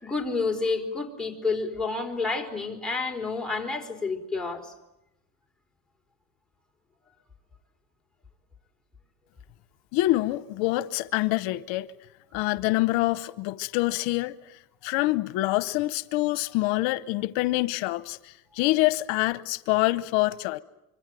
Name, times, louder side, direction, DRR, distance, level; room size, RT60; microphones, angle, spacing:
voice 1, 0.0-4.7, left 3 dB, ahead, 4.5 m, -29 dB
voice 2, 9.9-11.9 12.3-14.3 14.8-20.6, left 19 dB, 70° left, 1.0 m, -26 dB
25.5 x 25.0 x 9.1 m
cardioid pair, 130°, 48 cm